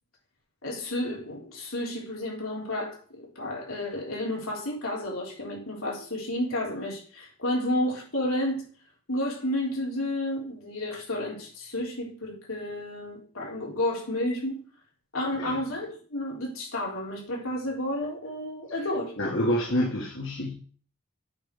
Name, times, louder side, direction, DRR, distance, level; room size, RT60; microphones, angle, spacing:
voice 1, 0.6-8.7 9.1-14.6 15.1-19.1, left 1 dB, 85° left, -2 dB, 3.8 m, -31 dB
voice 2, 19.2-20.6, equal, 65° left, -2 dB, 1.6 m, -27 dB
8.7 x 5.2 x 5.4 m, 0.43 s
head